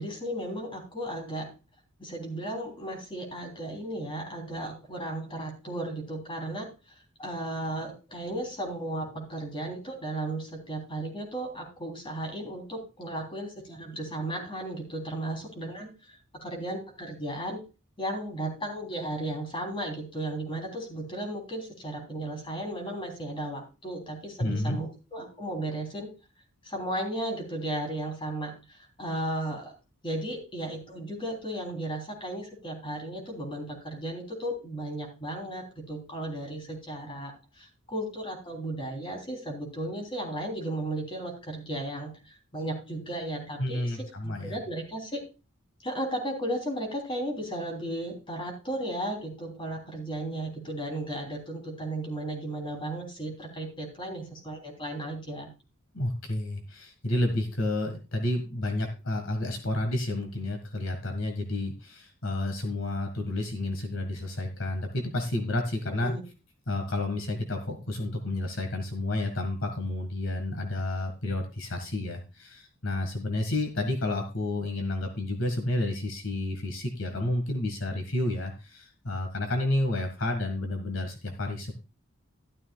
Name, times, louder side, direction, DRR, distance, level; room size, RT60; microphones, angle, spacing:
voice 1, 0.0-1.5 2.0-6.7 7.2-17.6 18.0-26.1 26.6-29.7 30.0-44.0 44.2-45.2 45.8-55.5 65.8-66.2, right 1 dB, 25° left, 2 dB, 3.3 m, -35 dB
voice 2, 24.4-24.8 43.6-44.6 55.9-66.1 66.7-81.8, left 1 dB, 65° left, 4 dB, 1.7 m, -30 dB
12.5 x 12.0 x 2.3 m, 0.30 s
head